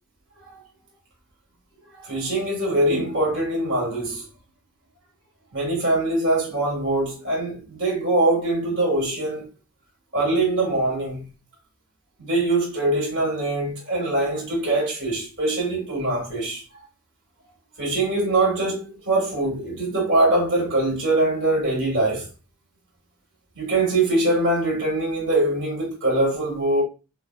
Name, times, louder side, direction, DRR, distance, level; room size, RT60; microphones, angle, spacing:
voice 1, 2.0-4.3 5.5-9.5 10.1-11.3 12.2-16.6 17.8-22.3 23.6-26.8, right 2 dB, 55° right, 2.0 m, -23 dB
5.7 x 2.2 x 2.4 m
head